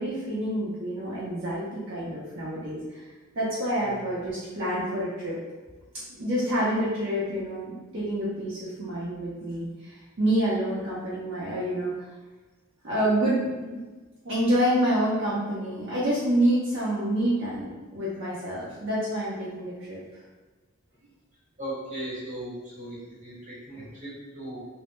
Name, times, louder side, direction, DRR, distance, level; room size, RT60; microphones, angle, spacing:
voice 1, 0.0-3.0 3.3-5.4 6.2-12.1 12.8-13.8 14.2-20.0, right 1 dB, 60° right, -9 dB, 0.6 m, -27 dB
voice 2, 21.6-24.7, right 1 dB, 35° right, -7 dB, 0.9 m, -38 dB
2.1 x 2.0 x 3.0 m, 1.3 s
head